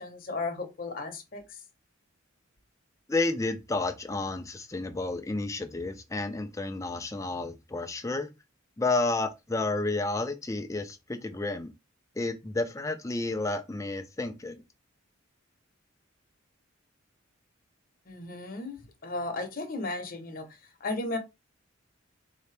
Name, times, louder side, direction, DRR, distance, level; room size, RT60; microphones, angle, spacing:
voice 1, 0.0-1.6 18.1-20.5 20.8-21.2, left 2 dB, 45° left, 0.9 m, -35 dB
voice 2, 3.1-8.3 8.8-11.7 12.2-14.6, left 2 dB, 15° left, 0.5 m, -31 dB
4.1 x 2.8 x 3.3 m
head